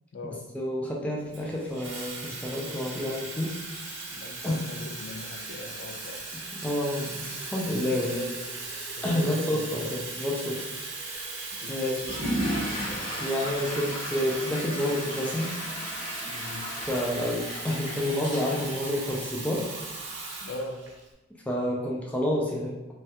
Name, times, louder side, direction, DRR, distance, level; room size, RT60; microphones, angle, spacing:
voice 1, 0.5-3.6 4.4-4.6 6.6-8.2 9.0-10.7 11.7-12.0 13.2-15.5 16.9-19.7 21.5-22.9, left 1 dB, 5° left, -3 dB, 0.4 m, -29 dB
Water tap faucet / Fill (with liquid), 1.3-21.1, right 3 dB, 60° right, 0.7 m, -38 dB
voice 2, 4.1-6.2 7.6-8.5 9.0-9.9 11.6-12.8 16.3-16.7 20.4-20.8, left 1 dB, 70° left, 3 dB, 0.4 m, -39 dB
Water / Toilet flush, 12.0-19.7, equal, 45° left, 1.3 m, -35 dB
3.2 x 2.3 x 2.8 m, 1.0 s
head